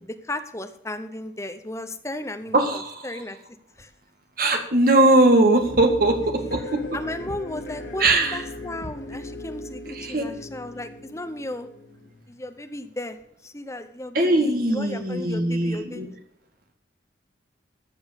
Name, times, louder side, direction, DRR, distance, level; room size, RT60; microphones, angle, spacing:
voice 1, 0.0-3.4 3.8-3.9 6.9-11.7 12.3-16.2, left 1 dB, 15° left, 8 dB, 0.9 m, -35 dB
voice 2, 2.5-3.1 4.4-6.8 8.0-8.4 9.9-10.2 14.1-16.1, right 2 dB, 50° right, 5 dB, 1.9 m, -20 dB
sound 1, 5.6-12.5, left 1 dB, 85° left, 3.1 m, -38 dB
13.0 x 6.3 x 8.2 m, 0.65 s
head